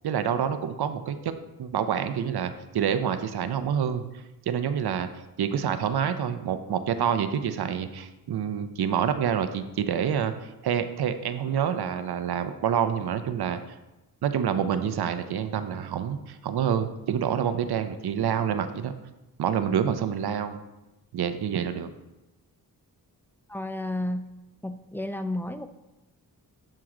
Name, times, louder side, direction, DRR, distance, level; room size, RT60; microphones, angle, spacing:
voice 1, 0.0-1.3 1.6-4.0 4.5-5.1 5.4-13.6 14.2-18.9 19.4-20.6 21.1-21.9, right 8 dB, 75° right, 10 dB, 0.6 m, -27 dB
voice 2, 23.5-24.3 24.6-25.7, left 1 dB, 5° left, 8 dB, 0.3 m, -31 dB
7.5 x 4.5 x 3.7 m, 0.98 s
wide cardioid pair, 90°, 38 cm